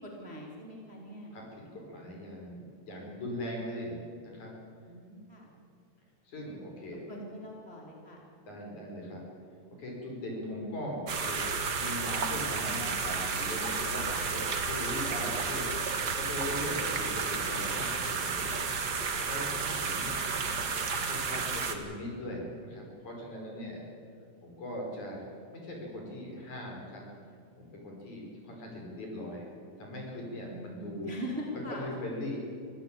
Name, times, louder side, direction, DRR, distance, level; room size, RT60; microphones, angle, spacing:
voice 1, 0.0-1.4 4.9-5.5 6.8-8.2 19.5-19.7 30.5-31.9, equal, 15° right, -1 dB, 3.1 m, -42 dB
voice 2, 1.3-4.5 6.2-7.0 8.5-9.2 9.8-11.4 11.7-18.5 19.2-20.7 21.1-23.8 24.4-25.3 25.5-27.0 27.6-29.5 29.8-31.1 31.7-32.4, left 1 dB, 50° left, -1 dB, 6.3 m, -40 dB
sound 1, 11.1-21.7, right 5 dB, 55° right, 1.1 m, -32 dB
25.0 x 15.5 x 8.7 m, 2.3 s
omnidirectional pair, 4.6 m